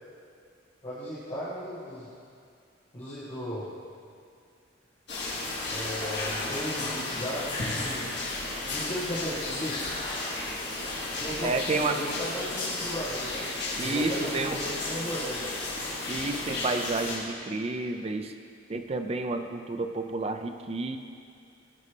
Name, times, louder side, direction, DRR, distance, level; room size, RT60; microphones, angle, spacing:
voice 1, 0.8-2.1 2.9-3.7 5.7-8.1 8.7-9.9 11.2-13.5 13.8-15.4, equal, 30° left, -12 dB, 1.7 m, -36 dB
sound 1, 5.1-17.2, left 2 dB, 60° left, 2.2 m, -33 dB
voice 2, 11.4-12.0 13.8-14.6 16.1-18.3 18.7-21.0, right 3 dB, 30° right, 6 dB, 0.4 m, -30 dB
15.5 x 5.3 x 3.4 m, 2.3 s
head